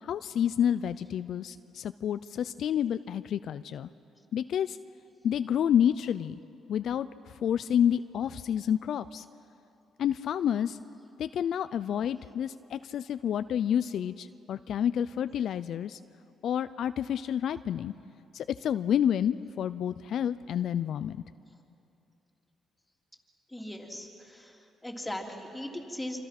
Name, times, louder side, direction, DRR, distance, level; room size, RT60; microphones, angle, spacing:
voice 1, 0.0-3.9 4.3-4.8 5.2-6.4 6.7-7.1 7.4-9.2 10.0-10.8 11.2-16.0 16.4-17.9 18.3-21.2, left 9 dB, 70° left, 13 dB, 0.4 m, -29 dB
voice 2, 23.5-26.2, left 1 dB, 10° left, 1 dB, 3.0 m, -39 dB
26.0 x 26.0 x 5.9 m, 2.8 s
cardioid pair, 90°, 0 cm